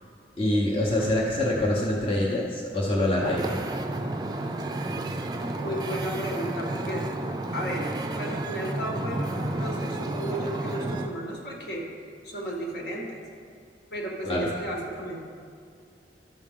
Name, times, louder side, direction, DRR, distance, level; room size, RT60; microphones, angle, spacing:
voice 1, 0.4-3.6 14.3-14.5, left 1 dB, 30° left, -4 dB, 0.9 m, -25 dB
Wind / Ocean, 3.2-11.1, right 2 dB, 25° right, 0.4 m, -31 dB
voice 2, 5.5-7.1 7.5-11.9 12.2-13.2 13.9-15.2, right 1 dB, 65° left, -2 dB, 1.7 m, -34 dB
12.5 x 6.2 x 3.7 m, 2.2 s
head